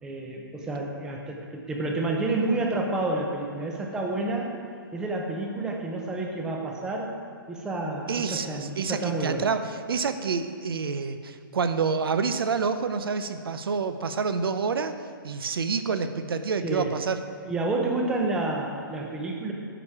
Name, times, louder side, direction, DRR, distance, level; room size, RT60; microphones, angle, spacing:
voice 1, 0.0-4.6 4.9-7.2 7.5-9.5 16.6-17.0 17.4-19.5, right 2 dB, 5° right, 1 dB, 0.6 m, -29 dB
voice 2, 8.1-15.0 15.2-17.2, right 5 dB, 80° right, 10 dB, 0.7 m, -28 dB
10.0 x 5.0 x 7.1 m, 2.1 s
hypercardioid pair, 170°, 12 cm